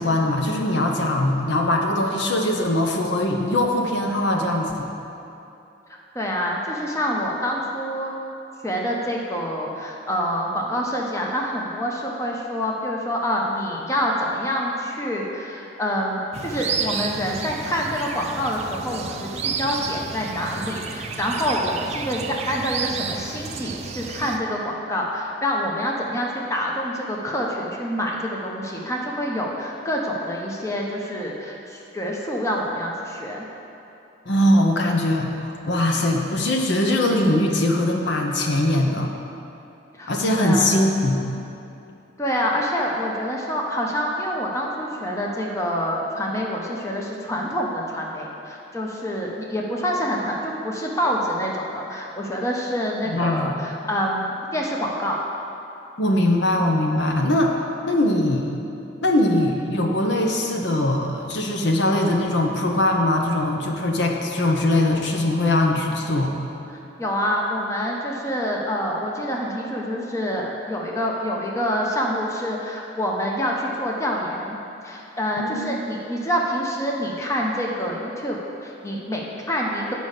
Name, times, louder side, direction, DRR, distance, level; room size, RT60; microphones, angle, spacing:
voice 1, 0.0-4.9 34.3-39.1 40.1-41.2 53.1-53.5 56.0-58.5 59.0-66.3 75.4-75.7, left 1 dB, 65° left, 2 dB, 0.8 m, -21 dB
voice 2, 5.9-8.1 8.6-33.5 39.9-40.9 42.2-55.2 67.0-74.6 74.8-79.9, equal, 15° left, -2 dB, 0.9 m, -26 dB
sound 1, 16.3-24.4, right 5 dB, 35° right, 0.4 m, -31 dB
9.2 x 5.4 x 6.5 m, 2.8 s
head